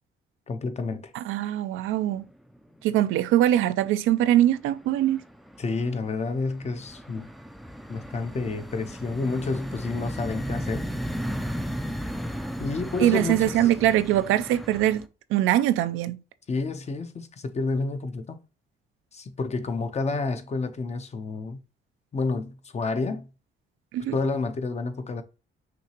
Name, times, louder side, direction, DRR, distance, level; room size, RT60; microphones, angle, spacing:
voice 1, 0.5-1.1 5.6-7.3 7.9-10.9 12.6-13.7 16.5-18.4 19.1-21.6 22.1-23.3 24.1-25.2, left 3 dB, 35° left, 0.6 m, -29 dB
voice 2, 1.1-2.2 2.8-5.2 13.0-15.0 15.3-16.2 23.9-24.2, right 13 dB, 85° right, 0.4 m, -22 dB
sound 1, 2.0-2.5 2.8-3.6 3.9-15.1, equal, ahead, 0.4 m, -35 dB
6.0 x 2.8 x 2.8 m
cardioid pair, 90°, 20 cm